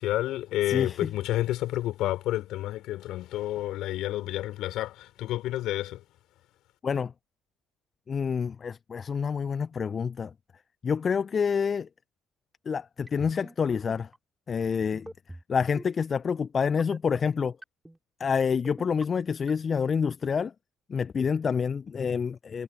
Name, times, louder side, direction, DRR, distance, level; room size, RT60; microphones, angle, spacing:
voice 1, 0.0-6.0, left 15 dB, 60° left, 4.0 m, -30 dB
voice 2, 0.7-1.1 6.8-7.1 8.1-10.3 10.8-11.9 12.7-14.1 14.5-15.1 15.5-17.6 18.2-20.5 20.9-22.6, left 6 dB, 40° left, 1.0 m, -27 dB
sound 1, 13.1-13.5 13.9-14.2 14.9-15.4 15.8-16.0 16.8-17.2 17.6-18.0 18.6-19.0 19.5-19.8, right 1 dB, 10° right, 5.1 m, -44 dB
figure-of-eight pair, 50°, 0 cm